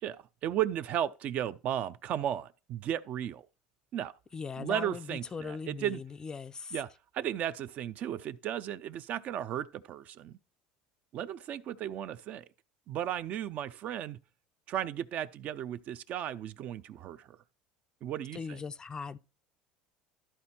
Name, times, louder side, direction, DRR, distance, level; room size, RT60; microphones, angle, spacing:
voice 1, 0.0-3.5 3.9-4.1 4.6-6.0 6.7-6.9 7.1-10.4 11.1-12.5 12.9-14.2 14.7-17.4 18.0-18.6, right 10 dB, 45° right, 0.6 m, -35 dB
voice 2, 4.3-6.8 18.3-19.2, left 5 dB, 20° left, 0.4 m, -39 dB
12.5 x 4.3 x 4.3 m
cardioid pair, 135°, 3 cm